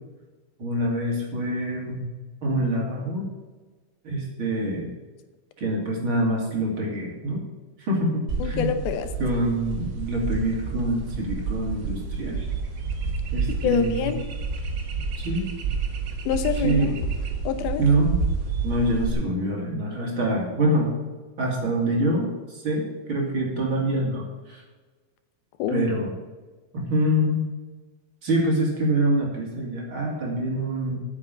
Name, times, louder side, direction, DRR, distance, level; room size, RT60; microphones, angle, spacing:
voice 1, 0.6-2.1 2.4-3.3 4.0-4.9 5.6-7.4 7.8-8.7 9.2-12.5 13.3-14.1 15.2-15.5 16.5-16.9 17.8-18.2 18.6-20.9 21.4-24.6 25.7-26.1 26.7-27.4 28.2-31.0, right 1 dB, 35° right, -3 dB, 2.9 m, -25 dB
sound 1, 8.3-19.1, right 4 dB, 65° right, 1.2 m, -29 dB
voice 2, 8.4-9.1 13.6-14.2 16.3-16.9 17.4-17.8 25.6-25.9, left 7 dB, 90° left, 10 dB, 2.8 m, -26 dB
8.6 x 7.1 x 8.8 m, 1.3 s
omnidirectional pair, 4.2 m